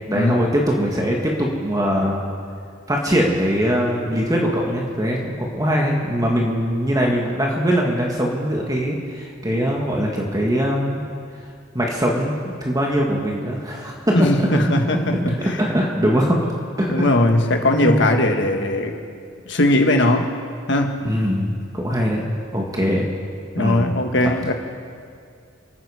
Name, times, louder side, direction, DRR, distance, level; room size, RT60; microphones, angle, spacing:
voice 1, 0.1-2.2 2.9-11.0 11.7-14.1 14.5-14.7 15.1-15.3 15.6-16.5 16.8-17.1 17.7-18.1 21.0-22.2 22.5-23.1 23.6-23.9, equal, 20° right, -1 dB, 1.6 m, -21 dB
voice 2, 14.1-15.6 16.9-18.9 19.4-20.3 20.7-21.0 23.5-24.5, left 1 dB, 65° left, 4 dB, 1.5 m, -19 dB
27.5 x 9.5 x 4.9 m, 2.3 s
head